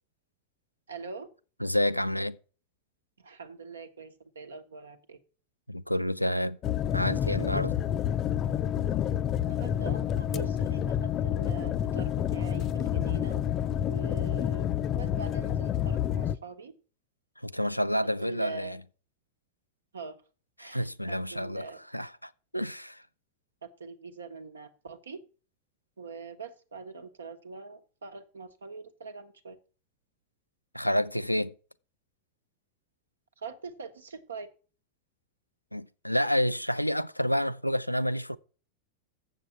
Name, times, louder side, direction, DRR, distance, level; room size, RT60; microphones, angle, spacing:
voice 1, 0.9-1.3 3.2-5.2 9.4-13.4 13.8-14.7 14.9-16.7 18.2-18.8 19.9-20.2 20.6-20.9 21.4-21.8 23.6-25.2 26.0-29.6 33.4-34.5, right 4 dB, 70° right, 1.1 m, -43 dB
voice 2, 1.6-2.4 5.7-6.6 6.9-7.8 17.4-18.8 20.6-23.0 30.7-31.5 35.7-38.4, equal, 90° left, 0.4 m, -29 dB
sound 1, 6.6-16.4, left 10 dB, 30° left, 0.4 m, -29 dB
7.5 x 7.3 x 6.9 m
figure-of-eight pair, 90°, 0 cm